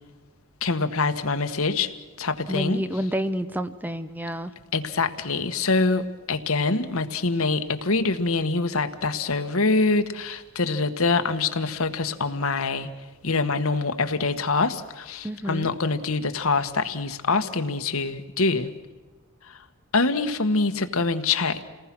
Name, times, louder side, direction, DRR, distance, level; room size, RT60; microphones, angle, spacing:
voice 1, 0.6-1.9 2.2-2.8 4.7-12.9 13.2-18.7 19.4-19.6 19.9-21.6, left 3 dB, 75° left, 8 dB, 1.4 m, -25 dB
voice 2, 2.5-4.5 15.2-15.7, equal, 10° right, 11 dB, 0.6 m, -29 dB
28.5 x 19.5 x 6.1 m, 1.2 s
head